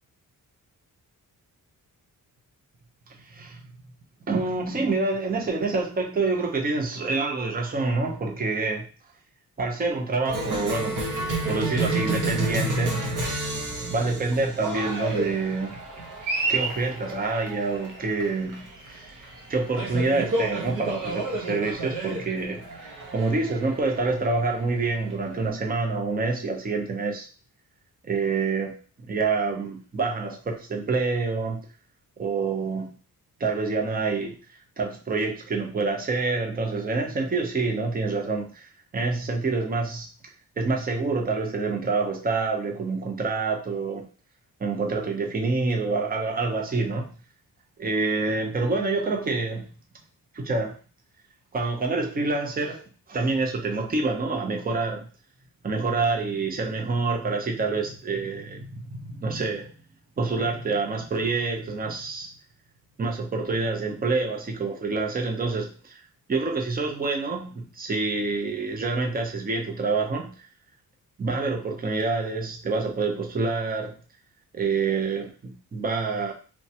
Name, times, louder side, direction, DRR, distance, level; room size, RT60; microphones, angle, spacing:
voice 1, 3.3-3.6 4.3-8.9 9.6-11.0 11.5-13.0 13.9-15.8 16.5-19.1 19.5-22.6 23.1-27.3 28.0-31.6 32.2-32.9 33.4-34.4 34.8-40.1 40.6-44.0 44.6-47.1 47.8-49.7 50.3-50.8 51.5-52.8 53.1-55.1 55.6-59.7 60.2-62.3 63.0-66.0 66.3-70.3 71.2-73.9 74.5-76.3, right 3 dB, 25° right, 1 dB, 0.5 m, -27 dB
Cheering, 10.3-25.5, right 2 dB, 60° right, 0.8 m, -31 dB
3.2 x 2.2 x 2.7 m, 0.37 s
wide cardioid pair, 150°, 37 cm